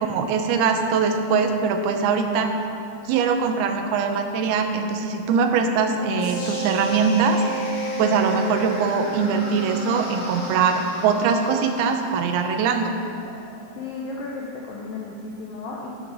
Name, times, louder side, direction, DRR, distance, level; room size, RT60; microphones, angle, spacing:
voice 1, 0.0-2.5 3.1-7.4 8.0-12.9, right 5 dB, 75° right, 4 dB, 2.4 m, -22 dB
Wind instrument woodwind instrument, 6.0-10.5, right 2 dB, 50° right, 1.8 m, -32 dB
sound 1, 6.2-14.2, left 1 dB, 65° left, 1.3 m, -39 dB
voice 2, 13.8-15.9, left 3 dB, 80° left, -3 dB, 2.0 m, -34 dB
16.5 x 6.4 x 4.0 m, 2.6 s
omnidirectional pair, 5.1 m